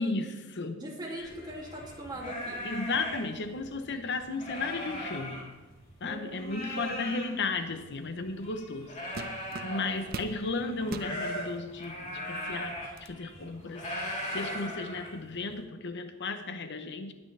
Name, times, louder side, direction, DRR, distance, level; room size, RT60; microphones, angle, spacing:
voice 1, 0.0-0.8 1.1-1.3 2.6-5.4 6.0-8.9 9.6-12.7 13.0-13.9 14.3-17.1, left 3 dB, 55° left, 8 dB, 0.8 m, -34 dB
voice 2, 0.7-2.7 6.0-7.1 14.1-14.2, right 1 dB, 20° right, -2 dB, 2.6 m, -41 dB
sound 1, 1.2-6.0 6.3-15.5, equal, 35° left, 3.4 m, -39 dB
sound 2, 8.4-8.6 9.1-10.4 10.8-11.1 11.8-11.9 12.4-13.2, right 3 dB, 45° right, 0.7 m, -40 dB
20.0 x 8.9 x 3.4 m, 1.1 s
head